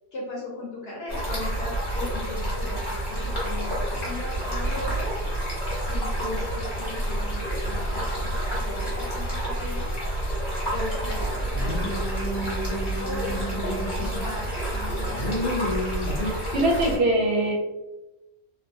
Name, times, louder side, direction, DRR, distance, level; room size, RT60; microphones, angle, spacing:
voice 1, 0.1-5.4 5.8-9.9 10.7-15.6, left 2 dB, 60° left, -3 dB, 0.8 m, -38 dB
Stream, 1.1-17.0, right 1 dB, 25° left, 0.9 m, -29 dB
sound 1, 11.5-14.4 14.8-16.3, left 1 dB, 85° left, 1.0 m, -31 dB
voice 2, 16.2-17.5, right 1 dB, 65° right, -2 dB, 0.7 m, -23 dB
2.6 x 2.1 x 2.6 m, 1.0 s
omnidirectional pair, 1.4 m